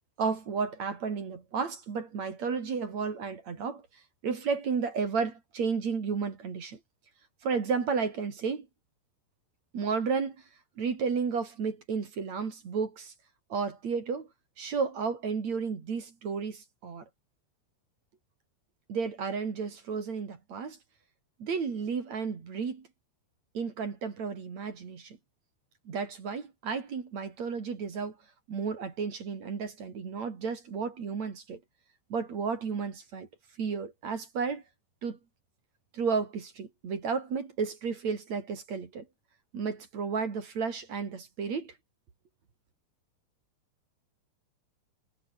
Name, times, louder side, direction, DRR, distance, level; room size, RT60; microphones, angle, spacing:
voice 1, 0.2-3.9 4.2-6.8 7.4-8.7 9.7-10.4 10.8-13.1 13.5-14.3 14.6-17.0 18.9-20.8 21.4-22.9 23.5-25.2 25.9-28.2 28.5-31.6 32.1-33.3 33.6-34.6 35.0-35.2 35.9-39.1 39.5-41.7, right 5 dB, 40° right, 3.6 m, -32 dB
omnidirectional pair, 5.5 m